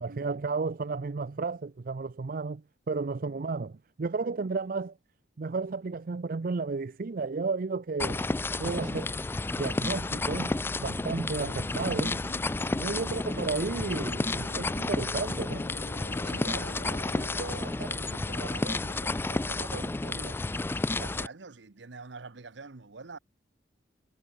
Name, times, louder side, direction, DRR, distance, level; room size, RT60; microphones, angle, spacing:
voice 1, 0.0-4.9 5.4-8.2 8.6-9.1 9.6-12.2 12.8-15.7, right 4 dB, 50° right, 0.5 m, -33 dB
sound 1, 8.0-21.3, left 2 dB, 10° left, 0.3 m, -31 dB
voice 2, 8.7-9.1 16.1-20.4 20.8-23.2, right 3 dB, 80° right, 1.0 m, -44 dB
sound 2, 10.1-17.5, left 1 dB, 70° left, 2.7 m, -46 dB
head